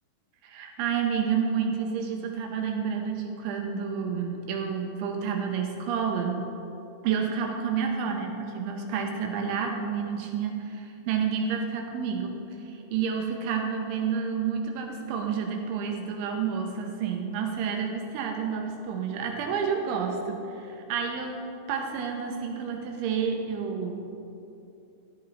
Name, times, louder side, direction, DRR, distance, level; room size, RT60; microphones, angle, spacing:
voice 1, 0.4-6.4 7.0-24.1, right 6 dB, 80° right, 2 dB, 3.1 m, -30 dB
13.5 x 13.5 x 3.7 m, 2.7 s
omnidirectional pair, 5.9 m